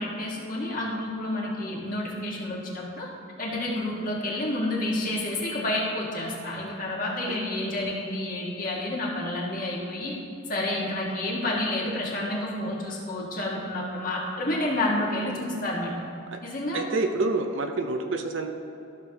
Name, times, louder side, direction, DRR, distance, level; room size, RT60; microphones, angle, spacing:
voice 1, 0.0-3.1 3.4-10.2 10.5-15.9 16.4-16.9, left 1 dB, 40° left, -3 dB, 1.7 m, -29 dB
voice 2, 16.7-18.5, right 3 dB, 65° right, 5 dB, 0.7 m, -28 dB
13.0 x 6.9 x 2.9 m, 2.7 s
head